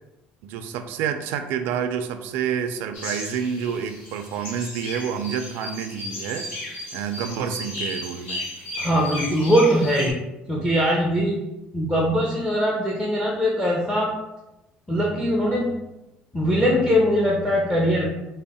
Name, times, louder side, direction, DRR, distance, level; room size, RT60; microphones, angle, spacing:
voice 1, 0.4-8.4, right 7 dB, 75° right, 8 dB, 0.4 m, -29 dB
sound 1, 2.9-10.1, left 1 dB, 70° left, 1.4 m, -35 dB
voice 2, 8.8-10.2 10.5-11.4 11.7-14.1 14.9-15.8 16.3-18.1, equal, 10° left, -3 dB, 0.6 m, -21 dB
3.5 x 2.1 x 4.1 m, 0.95 s
cardioid pair, 140°, 4 cm